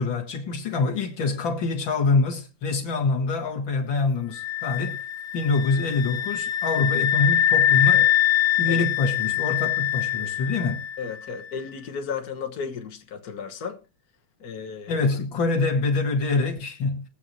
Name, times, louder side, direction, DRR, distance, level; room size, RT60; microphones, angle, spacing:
voice 1, 0.0-5.0 5.3-8.1 8.6-10.9 14.9-17.1, left 3 dB, 45° left, 1.9 m, -25 dB
sound 1, 4.3-11.1, left 11 dB, 70° left, 2.3 m, -23 dB
voice 2, 11.0-13.8 14.4-15.0, left 6 dB, 85° left, 0.8 m, -34 dB
22.0 x 8.3 x 3.1 m
omnidirectional pair, 3.5 m